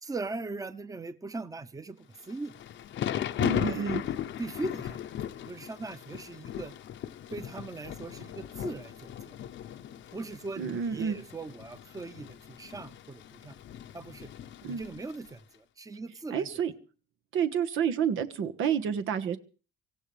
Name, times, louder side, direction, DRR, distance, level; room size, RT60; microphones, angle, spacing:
voice 1, 0.0-2.5 3.6-4.1 4.4-6.7 7.3-9.4 10.1-13.6 13.9-14.3 14.6-16.5, right 3 dB, 15° right, 0.9 m, -40 dB
Thunder / Rain, 2.2-15.3, left 10 dB, 70° left, 0.8 m, -37 dB
voice 2, 3.4-4.0 10.6-11.2 14.6-14.8 16.3-16.7 17.3-19.4, right 7 dB, 85° right, 1.4 m, -29 dB
24.5 x 15.5 x 3.4 m
cardioid pair, 90°, 20 cm